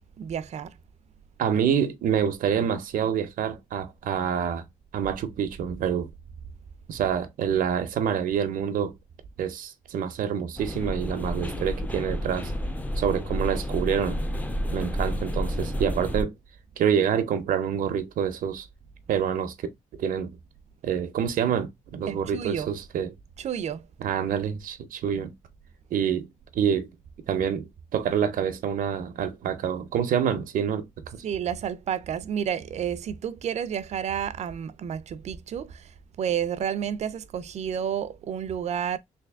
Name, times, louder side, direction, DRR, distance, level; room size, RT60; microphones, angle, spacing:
voice 1, 0.2-0.7 22.1-22.7 23.4-23.8 31.2-35.9 36.2-39.0, right 8 dB, 55° right, 0.4 m, -30 dB
voice 2, 1.4-4.6 4.9-6.1 6.9-8.9 9.4-12.5 13.0-14.2 14.7-16.3 16.8-18.7 19.1-19.5 19.9-20.3 20.8-23.1 24.0-25.3 25.9-26.3 26.5-26.9 27.3-30.9 31.1-31.2, right 8 dB, 85° right, 0.7 m, -27 dB
sound 1, 10.6-16.2, equal, 10° left, 0.4 m, -30 dB
3.4 x 2.6 x 3.4 m
wide cardioid pair, 160°, 14 cm